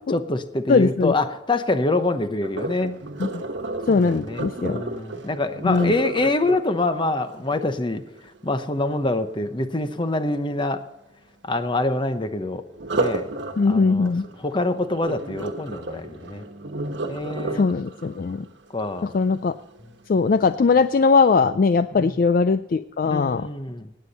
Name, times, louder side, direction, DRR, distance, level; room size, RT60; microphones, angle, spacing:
voice 1, 0.1-3.0 3.9-10.8 11.4-12.6 13.0-13.3 13.6-14.1 14.4-16.4 17.1-17.7 18.7-19.1 21.9-22.2 23.0-23.9, left 2 dB, 25° left, 9 dB, 0.8 m, -25 dB
voice 2, 0.7-1.1 3.2-3.4 3.9-4.8 5.6-5.9 13.6-14.3 17.5-18.4 19.0-19.6 20.1-23.5, left 4 dB, 45° left, 12 dB, 0.3 m, -20 dB
Sink (filling or washing), 2.4-8.4 12.7-19.8 20.3-20.6 21.1-21.2, right 2 dB, 60° right, 1.3 m, -32 dB
18.0 x 8.6 x 4.1 m, 0.94 s
head